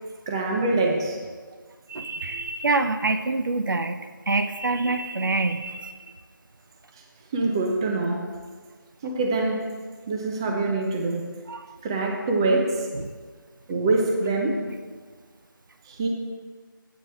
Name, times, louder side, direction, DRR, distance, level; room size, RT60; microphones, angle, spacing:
voice 1, 0.3-1.2 7.3-8.2 9.0-9.6 10.1-11.2 11.8-12.9 13.7-14.6 15.9-16.1, right 2 dB, 15° right, 0 dB, 0.6 m, -24 dB
voice 2, 1.9-4.0 4.3-5.9 11.5-11.6 13.0-13.1, right 3 dB, 65° right, 8 dB, 0.9 m, -26 dB
14.5 x 9.2 x 3.4 m, 1.5 s
figure-of-eight pair, 170°, 12 cm